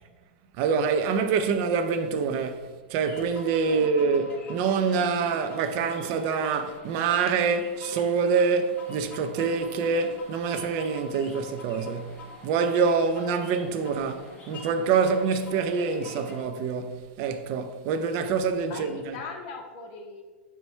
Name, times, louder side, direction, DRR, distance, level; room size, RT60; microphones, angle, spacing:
voice 1, 0.6-19.2, right 5 dB, 45° right, 0.4 m, -26 dB
sound 1, 3.0-16.4, left 2 dB, 25° left, 0.8 m, -45 dB
voice 2, 18.6-20.2, left 4 dB, 55° left, 0.7 m, -39 dB
4.2 x 2.2 x 4.4 m
hypercardioid pair, 130°, 7 cm